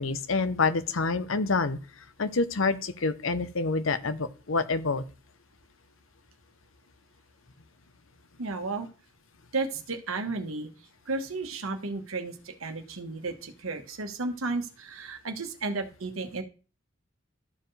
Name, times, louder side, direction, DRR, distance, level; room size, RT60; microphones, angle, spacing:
voice 1, 0.0-1.8 2.2-5.0, left 3 dB, 75° left, 11 dB, 0.8 m, -27 dB
voice 2, 8.4-8.9 9.5-10.7 11.1-16.4, right 3 dB, 85° right, 6 dB, 1.3 m, -33 dB
13.5 x 4.6 x 3.3 m, 0.36 s
head